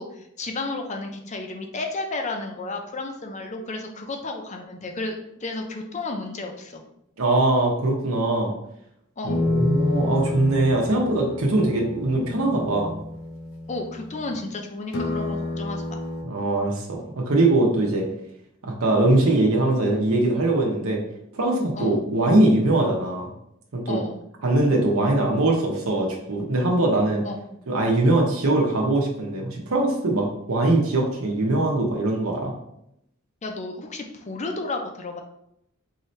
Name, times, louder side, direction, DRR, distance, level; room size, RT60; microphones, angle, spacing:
voice 1, 0.0-6.8 9.2-9.4 13.7-16.0 21.7-22.0 23.9-24.2 27.2-27.4 33.4-35.2, left 2 dB, 35° left, 3 dB, 0.6 m, -32 dB
voice 2, 7.2-8.5 9.2-12.9 16.2-18.1 18.6-21.0 21.3-23.3 23.7-24.0 24.4-27.2 27.7-32.5, right 2 dB, 75° right, -1 dB, 0.9 m, -21 dB
sound 1, 9.3-14.5 14.9-16.2, left 2 dB, 75° left, 0.7 m, -29 dB
4.7 x 2.8 x 3.2 m, 0.77 s
head